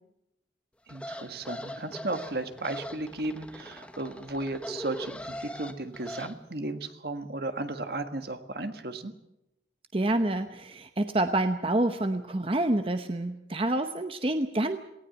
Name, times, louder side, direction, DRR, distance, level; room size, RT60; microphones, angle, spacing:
sound 1, 0.9-6.3, left 1 dB, 5° left, 1.2 m, -41 dB
voice 1, 0.9-9.1, right 2 dB, 55° right, 8 dB, 1.6 m, -35 dB
voice 2, 9.9-14.8, right 1 dB, 30° right, 8 dB, 0.8 m, -27 dB
18.5 x 17.5 x 9.1 m, 0.88 s
head